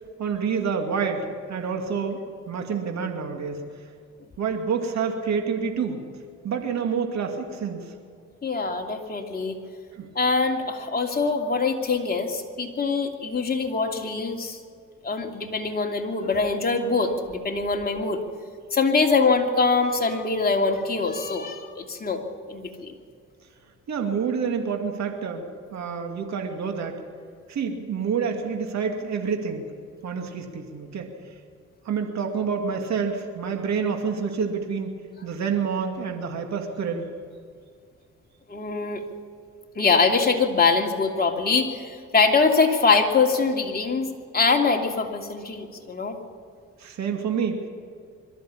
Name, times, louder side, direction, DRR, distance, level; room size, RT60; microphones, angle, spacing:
voice 1, 0.2-3.6 4.4-6.1 6.4-7.9 9.9-10.1 23.9-27.0 27.5-29.7 30.0-31.1 31.8-34.9 35.2-37.1 46.8-47.7, right 6 dB, 65° right, 3 dB, 2.5 m, -28 dB
voice 2, 8.4-9.6 10.1-14.6 15.0-18.2 18.7-22.9 38.5-39.0 39.7-44.1 44.3-46.2, left 4 dB, 30° left, 2 dB, 2.8 m, -23 dB
22.5 x 14.0 x 8.7 m, 2.3 s
cardioid pair, 90°, 30 cm